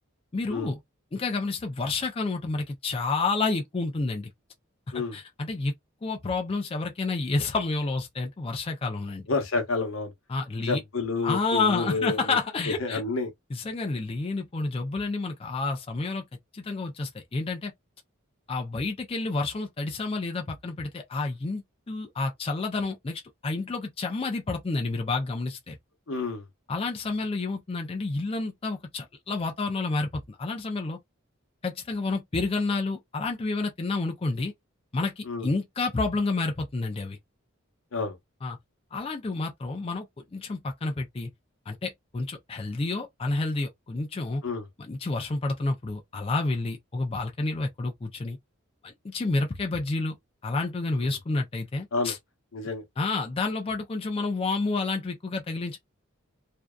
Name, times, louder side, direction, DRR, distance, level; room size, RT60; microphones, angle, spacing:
voice 1, 0.3-0.8 1.1-4.3 4.9-5.7 6.0-9.3 10.3-10.8 11.2-13.0 13.5-16.2 16.5-17.7 18.5-25.8 26.7-31.0 31.6-34.5 34.9-37.2 38.4-38.6 38.9-40.1 40.3-41.3 41.7-44.4 44.8-48.4 48.8-50.2 50.4-52.2 53.0-55.8, left 3 dB, 25° left, 0.4 m, -29 dB
voice 2, 9.3-10.1 10.7-12.4 12.7-13.3 26.1-26.5 35.3-35.5 37.9-38.2 44.4-44.7 51.9-52.1 52.5-52.8, left 3 dB, 75° left, 0.8 m, -29 dB
2.6 x 2.2 x 2.2 m
head